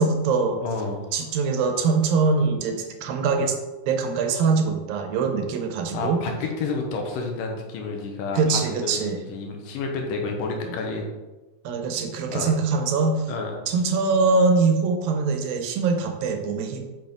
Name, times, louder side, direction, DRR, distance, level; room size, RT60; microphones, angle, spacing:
voice 1, 0.0-0.6 1.1-3.5 3.9-6.2 8.3-9.2 11.6-13.3 13.7-16.8, right 4 dB, 80° right, 5 dB, 2.6 m, -23 dB
voice 2, 0.6-1.1 5.9-11.1 12.3-12.5 13.3-13.5, left 4 dB, 75° left, 2 dB, 2.5 m, -30 dB
7.9 x 5.7 x 3.6 m, 1.2 s
omnidirectional pair, 4.0 m